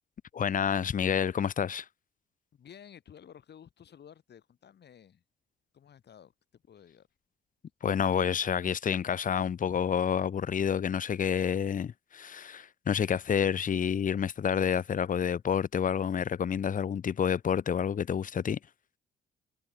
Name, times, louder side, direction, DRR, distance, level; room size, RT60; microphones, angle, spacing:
voice 1, 0.3-1.9 7.8-18.6, left 8 dB, 40° left, 0.9 m, -29 dB
voice 2, 2.5-5.2 5.7-7.1, left 8 dB, 60° left, 5.8 m, -53 dB
cardioid pair, 90°, 20 cm